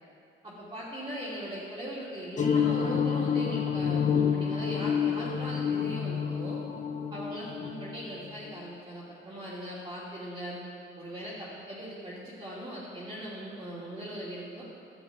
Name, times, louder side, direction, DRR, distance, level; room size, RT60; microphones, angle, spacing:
voice 1, 0.4-6.6 7.1-10.6 11.0-14.6, equal, 20° right, -9 dB, 3.2 m, -40 dB
sound 1, 2.4-8.6, left 7 dB, 40° left, 0.9 m, -28 dB
12.0 x 7.2 x 9.3 m, 2.5 s
cardioid pair, 90°, 20 cm